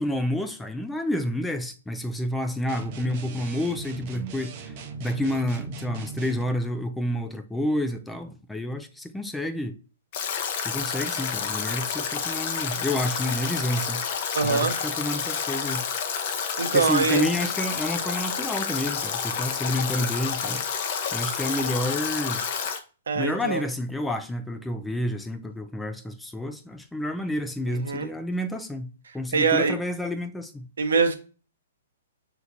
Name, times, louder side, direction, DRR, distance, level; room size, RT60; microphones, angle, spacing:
voice 1, 0.0-4.7 5.0-9.7 10.6-14.0 14.4-15.8 16.7-20.6 21.1-22.4 23.2-28.9 29.1-30.7, left 1 dB, 5° left, 0.3 m, -29 dB
sound 1, 2.7-6.5, right 4 dB, 35° right, 0.6 m, -38 dB
Stream / Drip / Trickle dribble, 10.1-22.8, left 7 dB, 40° left, 0.6 m, -29 dB
voice 2, 14.3-14.8 16.6-17.3 23.1-23.6 27.7-28.1 29.3-29.7 30.8-31.1, right 4 dB, 85° right, 0.9 m, -23 dB
5.6 x 2.9 x 2.5 m
hypercardioid pair, 160°, 0 cm